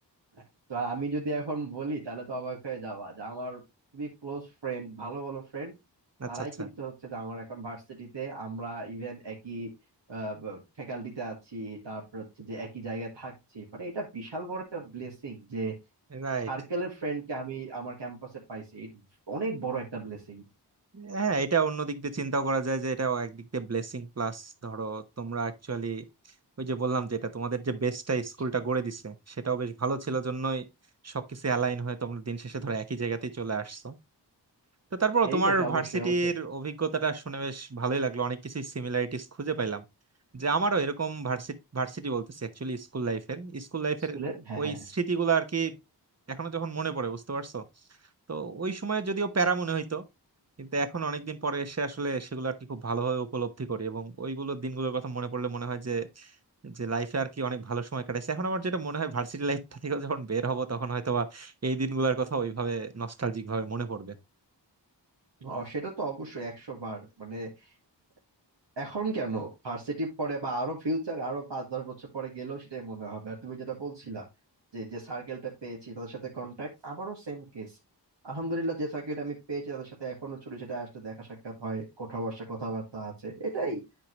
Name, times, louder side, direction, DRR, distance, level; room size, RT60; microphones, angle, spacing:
voice 1, 0.7-3.6 3.9-5.7 6.3-9.7 10.1-15.7 16.5-19.0 19.3-20.4 35.2-36.3 44.1-44.8 65.4-67.7 68.8-74.2 74.7-77.8 78.2-83.8, right 3 dB, 80° right, 2.0 m, -35 dB
voice 2, 6.2-6.7 16.1-16.5 20.9-26.0 26.6-30.6 31.0-34.0 35.0-39.8 40.3-44.2 44.6-45.8 46.3-47.6 48.3-50.0 50.6-56.3 56.6-64.1, right 4 dB, 35° right, 1.1 m, -30 dB
9.0 x 5.1 x 3.2 m
cardioid pair, 45°, 43 cm